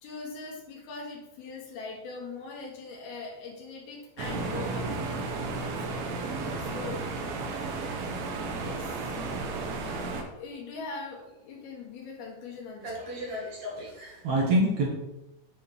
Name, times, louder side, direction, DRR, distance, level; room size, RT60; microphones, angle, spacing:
voice 1, 0.0-6.0 6.6-7.1 8.6-9.2 10.4-13.5, left 4 dB, 90° left, -1 dB, 3.6 m, -41 dB
sound 1, 4.2-10.2, right 3 dB, 80° right, 2.8 m, -33 dB
voice 2, 12.8-14.9, right 1 dB, 60° right, -2 dB, 2.1 m, -28 dB
9.1 x 3.4 x 5.3 m, 0.94 s
omnidirectional pair, 4.3 m